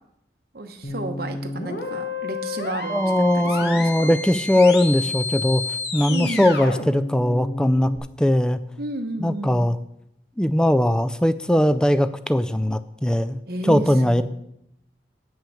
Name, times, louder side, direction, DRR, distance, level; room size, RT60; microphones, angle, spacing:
voice 1, 0.5-4.1 6.1-6.6 8.8-9.7 13.5-14.2, right 1 dB, 55° right, 6 dB, 1.0 m, -32 dB
sound 1, 0.8-8.0, left 3 dB, 65° left, 1.2 m, -31 dB
voice 2, 2.9-7.9 8.2-8.6 9.2-9.8 10.4-14.2, left 1 dB, 5° left, 11 dB, 0.3 m, -20 dB
9.0 x 5.7 x 7.1 m, 0.80 s
head